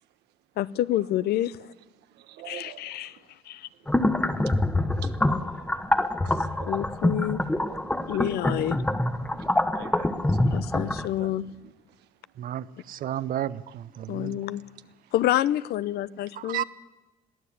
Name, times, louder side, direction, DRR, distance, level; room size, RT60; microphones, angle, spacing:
voice 1, 0.6-1.6 2.5-3.2 3.5-3.7 6.7-7.4 8.1-8.8 10.5-11.4 14.1-14.6 15.1-16.6, left 13 dB, 70° left, 0.7 m, -28 dB
voice 2, 2.0-3.4 3.8-3.9 4.8-6.8 7.7-8.3 9.1-10.7 11.2-12.1 15.0-15.1 16.1-16.2 16.5-16.6, right 15 dB, 85° right, 1.2 m, -44 dB
sound 1, 3.9-11.1, left 1 dB, 10° left, 1.1 m, -25 dB
voice 3, 12.4-14.4 16.3-16.6, right 11 dB, 55° right, 0.8 m, -33 dB
22.0 x 15.0 x 8.6 m
cardioid pair, 110°, 17 cm